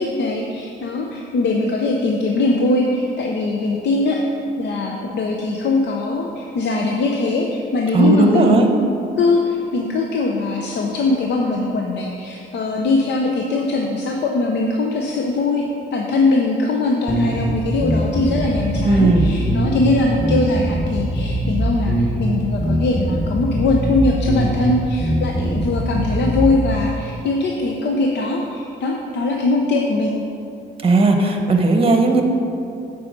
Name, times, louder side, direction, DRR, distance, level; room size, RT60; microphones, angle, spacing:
voice 1, 0.0-4.2 4.6-8.7 9.2-30.1, left 2 dB, 60° left, 0 dB, 0.7 m, -21 dB
voice 2, 7.9-8.7 18.8-19.3 30.8-32.2, right 3 dB, 30° right, 4 dB, 1.0 m, -15 dB
sound 1, 17.1-26.7, right 1 dB, 5° left, 1.5 m, -22 dB
8.2 x 4.8 x 5.2 m, 2.8 s
cardioid pair, 90°, 20 cm